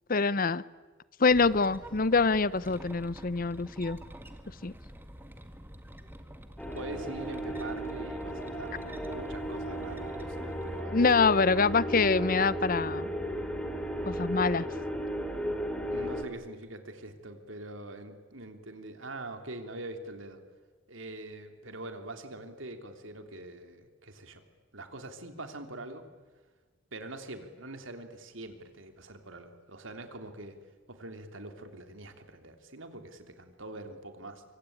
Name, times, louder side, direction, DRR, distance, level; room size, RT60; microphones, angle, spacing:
voice 1, 0.1-0.6 1.2-4.0 4.6-4.7 10.9-13.1 14.0-14.7, left 4 dB, 45° left, 18 dB, 0.7 m, -25 dB
sound 1, 1.3-10.8, right 1 dB, 10° right, 1.6 m, -48 dB
sound 2, 6.6-16.2, equal, 5° left, 2.8 m, -35 dB
voice 2, 6.7-11.0 11.6-11.7 15.9-20.4 20.9-24.4 24.7-26.0 26.9-30.6 30.9-34.4, right 2 dB, 75° right, 6 dB, 3.2 m, -44 dB
25.0 x 25.0 x 8.8 m, 1.4 s
head